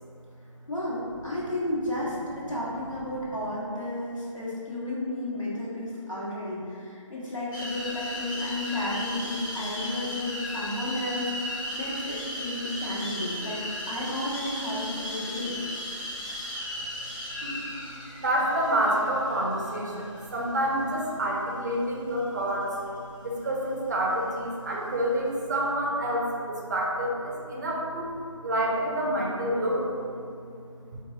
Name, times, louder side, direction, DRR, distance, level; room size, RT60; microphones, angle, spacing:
voice 1, 0.7-13.6 13.9-15.6, left 1 dB, 75° left, -7 dB, 1.3 m, -32 dB
sound 1, 7.5-21.1, equal, 35° left, 1.0 m, -36 dB
voice 2, 18.2-22.8 23.2-28.1 28.4-29.9 30.9-31.0, right 1 dB, 35° right, -2 dB, 0.5 m, -28 dB
4.5 x 2.3 x 2.7 m, 2.4 s
figure-of-eight pair, 150°, 17 cm